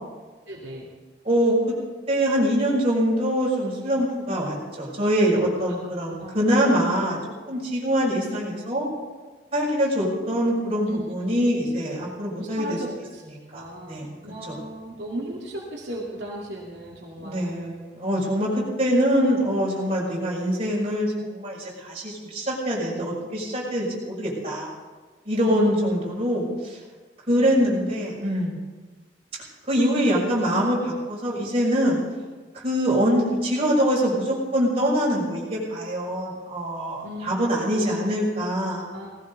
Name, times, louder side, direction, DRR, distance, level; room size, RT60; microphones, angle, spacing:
voice 1, 0.5-0.9 5.7-5.8 6.0-6.3 10.9-11.4 12.4-13.2 13.5-17.7 25.4-25.9 27.3-27.9 37.0-38.0 38.9-39.1, right 1 dB, 75° right, -5 dB, 2.6 m, -36 dB
voice 2, 2.1-7.2 7.5-8.9 9.5-12.8 13.5-14.1 14.5-14.6 17.2-24.7 25.2-26.8 27.3-28.5 29.7-32.0 32.5-38.9, equal, 35° right, -5 dB, 6.6 m, -24 dB
19.0 x 16.5 x 4.1 m, 1.3 s
head